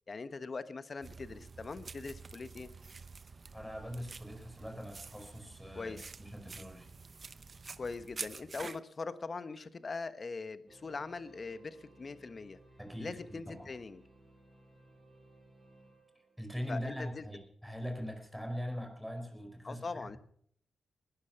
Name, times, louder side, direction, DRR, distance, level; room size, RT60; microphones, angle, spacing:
voice 1, 0.1-2.7 5.7-6.0 7.8-12.6 13.0-14.0 16.7-17.2 19.6-20.2, left 4 dB, 40° left, 12 dB, 1.2 m, -41 dB
sound 1, 1.0-8.8, right 4 dB, 35° right, 0.7 m, -48 dB
voice 2, 3.5-6.9 12.8-13.7 16.4-20.2, equal, ahead, 3 dB, 4.7 m, -42 dB
sound 2, 10.7-17.0, right 2 dB, 20° right, 5.8 m, -61 dB
20.0 x 12.0 x 5.9 m, 0.63 s
cardioid pair, 100°, 0 cm